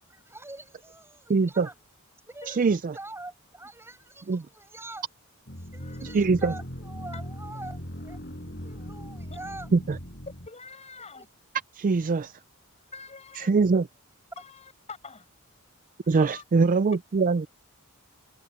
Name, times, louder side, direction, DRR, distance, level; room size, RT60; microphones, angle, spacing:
voice 1, 0.1-1.7 2.3-5.1 5.6-8.2 8.6-9.7 11.1-11.3, right 2 dB, 10° right, 7.8 m, -44 dB
voice 2, 1.3-1.7 2.5-3.0 4.3-4.4 6.0-6.5 9.7-10.0 11.7-12.3 13.4-13.8 16.1-17.5, right 4 dB, 40° right, 0.4 m, -23 dB
voice 3, 2.2-2.6 5.8-6.0 7.1-7.2 7.5-7.6 9.3-9.4 10.5-11.3 12.8-13.5 14.4-15.3 16.0-16.4, left 5 dB, 30° left, 7.1 m, -46 dB
sound 1, 5.5-10.5, equal, 50° left, 7.4 m, -39 dB
head